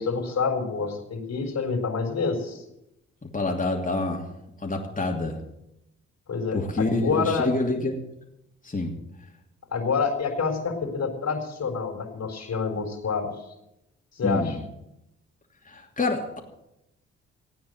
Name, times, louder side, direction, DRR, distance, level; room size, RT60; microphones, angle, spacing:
voice 1, 0.0-2.6 6.3-7.5 9.7-13.3 14.2-14.6, left 5 dB, 50° left, 3 dB, 4.1 m, -27 dB
voice 2, 3.2-4.2 4.6-5.4 6.5-8.0 8.6-8.9 14.2-14.6 15.7-16.4, left 2 dB, 25° left, 0 dB, 2.8 m, -27 dB
15.5 x 9.4 x 7.9 m, 0.86 s
hypercardioid pair, 40°, 33 cm